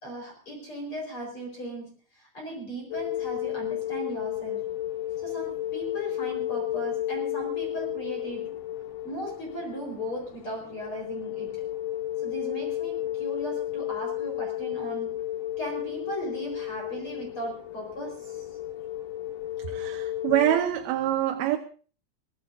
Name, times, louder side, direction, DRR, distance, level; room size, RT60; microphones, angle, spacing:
voice 1, 0.0-4.7 5.2-8.6 9.0-11.7 12.2-15.2 15.6-18.5, right 1 dB, 35° left, 5.2 m, -37 dB
sound 1, 2.9-20.6, left 13 dB, 70° left, 3.2 m, -33 dB
voice 2, 19.7-21.6, right 12 dB, 75° right, 2.8 m, -25 dB
23.0 x 18.5 x 2.6 m
omnidirectional pair, 4.6 m